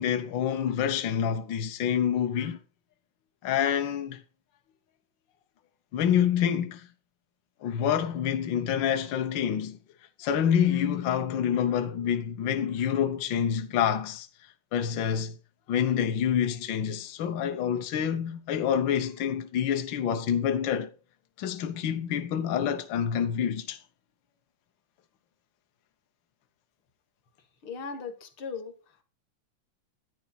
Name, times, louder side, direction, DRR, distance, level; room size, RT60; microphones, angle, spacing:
voice 1, 0.0-2.6 3.4-4.2 5.9-6.9 7.6-9.8 10.2-14.3 14.7-15.4 15.7-20.9 21.4-23.8, left 8 dB, 75° left, 1.0 m, -27 dB
voice 2, 27.6-29.0, left 5 dB, 55° left, 1.8 m, -38 dB
12.0 x 9.2 x 4.0 m
omnidirectional pair, 3.4 m